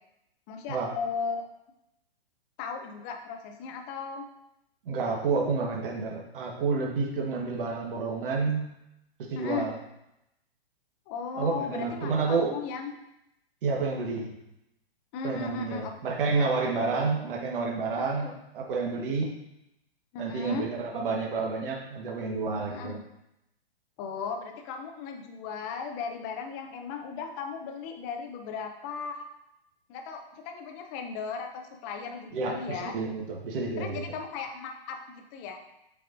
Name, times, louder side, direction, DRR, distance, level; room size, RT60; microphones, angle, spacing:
voice 1, 0.5-1.4 2.6-4.3 9.3-9.7 11.1-12.9 15.1-15.9 16.2-16.8 18.0-18.1 20.1-20.7 22.7-23.0 24.0-29.3 29.9-33.0 33.8-35.6, left 5 dB, 20° left, 4 dB, 0.4 m, -36 dB
voice 2, 4.8-8.7 9.2-9.8 11.4-12.5 13.6-14.3 15.2-19.3 20.2-23.0 32.3-34.0, right 4 dB, 60° right, -1 dB, 1.4 m, -29 dB
8.0 x 4.7 x 2.6 m, 0.85 s
hypercardioid pair, 145°, 31 cm